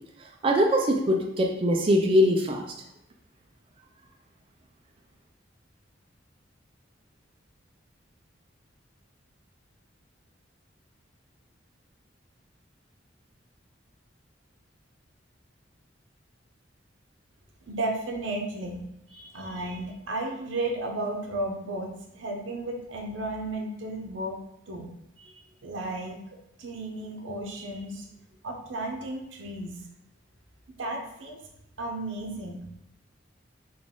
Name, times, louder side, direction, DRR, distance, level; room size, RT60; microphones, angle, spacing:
voice 1, 0.4-2.7, equal, 30° right, 1 dB, 0.4 m, -22 dB
voice 2, 17.7-24.4 24.7-24.9 25.2-26.2 26.6-28.1 28.4-29.8 30.8-31.4 31.8-32.6, right 2 dB, 80° right, 1 dB, 0.7 m, -34 dB
4.0 x 2.4 x 3.6 m, 0.79 s
head